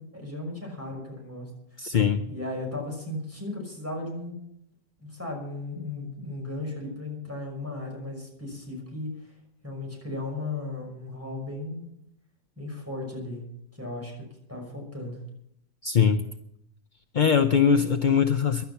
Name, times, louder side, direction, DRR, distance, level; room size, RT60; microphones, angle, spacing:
voice 1, 0.0-1.5 2.3-4.4 5.0-9.3 9.6-11.8 12.6-13.4 13.7-14.2 14.5-15.2, left 2 dB, 10° right, -1 dB, 5.8 m, -36 dB
voice 2, 1.8-2.2 15.8-16.2 17.1-18.6, left 7 dB, 50° left, 8 dB, 0.5 m, -21 dB
16.0 x 12.0 x 5.8 m, 0.75 s
omnidirectional pair, 1.6 m